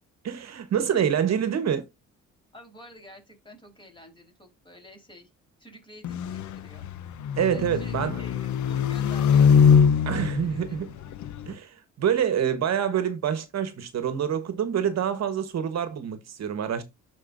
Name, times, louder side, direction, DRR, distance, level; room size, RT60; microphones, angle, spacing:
voice 1, 0.2-1.8 7.4-8.2 10.1-10.9 11.5-16.8, right 8 dB, 60° right, 1.2 m, -26 dB
voice 2, 2.5-5.3 5.6-6.9 7.5-10.8, equal, 15° left, 3.9 m, -49 dB
sound 1, 6.0-11.5, left 7 dB, 70° left, 0.8 m, -23 dB
12.0 x 4.6 x 2.5 m
cardioid pair, 90°, 30 cm